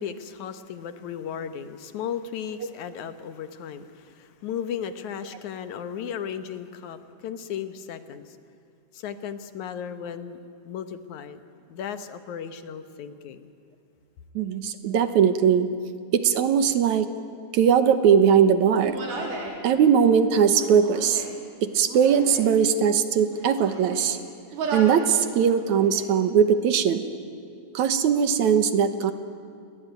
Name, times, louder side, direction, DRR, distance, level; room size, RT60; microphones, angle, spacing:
voice 1, 0.0-8.4 8.9-10.4 10.6-11.4 11.7-13.5, left 8 dB, 70° left, 10 dB, 2.4 m, -35 dB
voice 2, 14.4-15.7 16.1-17.1 17.5-19.0 19.6-21.2 21.6-24.2 24.7-27.1 27.7-29.1, right 7 dB, 70° right, 10 dB, 2.4 m, -20 dB
Human voice, 18.8-19.6 20.5-21.4 21.9-22.5 23.2-24.1 24.5-25.1 25.5-26.2, right 4 dB, 85° right, 5.6 m, -35 dB
30.0 x 21.5 x 9.2 m, 2.4 s
omnidirectional pair, 3.7 m